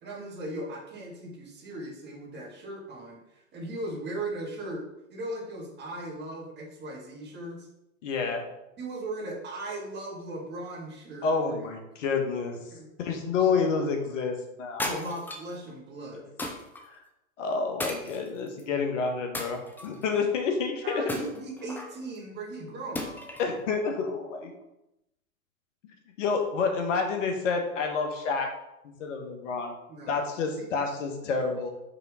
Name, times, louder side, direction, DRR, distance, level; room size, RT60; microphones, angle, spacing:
voice 1, 0.0-7.7 8.8-11.6 12.7-12.9 13.5-13.6 14.8-16.3 20.8-23.1 29.9-30.2 30.6-30.7, right 2 dB, 25° right, -2 dB, 2.0 m, -38 dB
voice 2, 8.0-8.4 11.2-12.6 13.0-15.1 16.9-17.0 17.4-21.0 23.4-24.5 26.2-28.5 29.0-29.7 30.1-31.7, left 5 dB, 60° left, 4 dB, 1.5 m, -29 dB
sound 1, 14.8-15.6 16.4-16.8 17.8-18.6 19.3-20.1 21.1-22.0 23.0-23.5, left 1 dB, 5° left, 0.5 m, -35 dB
5.6 x 5.4 x 3.7 m, 0.88 s
hypercardioid pair, 115°, 41 cm